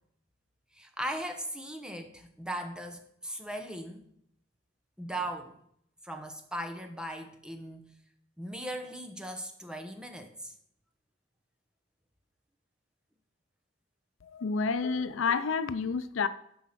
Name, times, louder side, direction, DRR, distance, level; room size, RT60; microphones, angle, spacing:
voice 1, 0.7-4.0 5.0-5.5 6.0-7.9 8.4-10.5, right 1 dB, 5° right, 0.9 m, -38 dB
voice 2, 14.2-16.3, left 5 dB, 80° left, 0.5 m, -29 dB
11.5 x 4.6 x 5.8 m
head